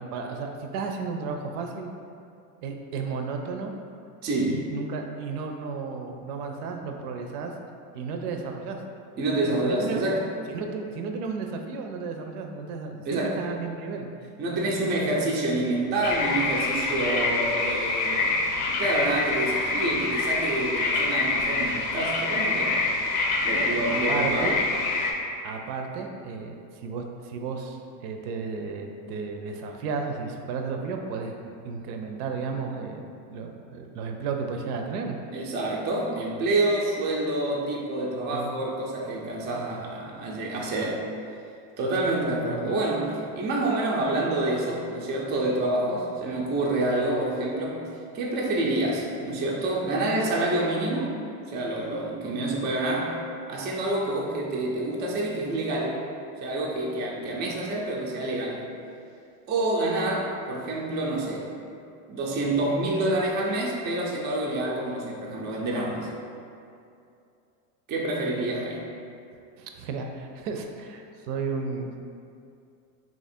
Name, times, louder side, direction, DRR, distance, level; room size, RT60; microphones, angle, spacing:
voice 1, 0.0-1.9 2.6-3.7 4.4-7.5 7.9-8.8 9.5-10.0 10.5-14.1 14.6-15.2 23.5-24.6 25.4-26.6 26.8-35.2 38.3-38.5 42.1-42.8 69.6-72.0, right 5 dB, 80° right, 3 dB, 0.6 m, -33 dB
voice 2, 4.2-4.6 9.2-10.2 13.0-13.3 14.4-18.3 18.6-22.8 23.4-24.6 35.3-41.0 41.8-47.8 48.1-51.1 51.5-53.2 53.5-56.0 56.4-58.6 59.5-61.5 62.1-66.1 67.9-68.8, right 2 dB, 25° right, -3 dB, 0.4 m, -27 dB
sound 1, 16.0-25.1, left 3 dB, 45° left, 0.6 m, -26 dB
2.9 x 2.5 x 4.2 m, 2.5 s
supercardioid pair, 125°, 47 cm